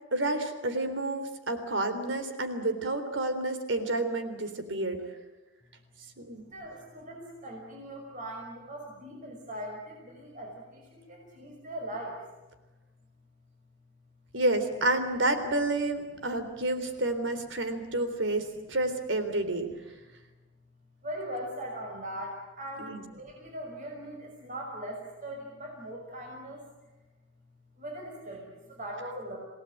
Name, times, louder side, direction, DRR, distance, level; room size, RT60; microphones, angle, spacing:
voice 1, 0.1-5.0 6.2-6.5 14.3-19.7 22.8-23.0, right 2 dB, 80° right, 9 dB, 3.6 m, -29 dB
voice 2, 6.4-12.2 17.7-17.9 18.6-18.7 21.0-26.7 27.8-29.4, right 1 dB, 45° right, 0 dB, 5.6 m, -40 dB
27.5 x 18.5 x 9.1 m, 1.1 s
head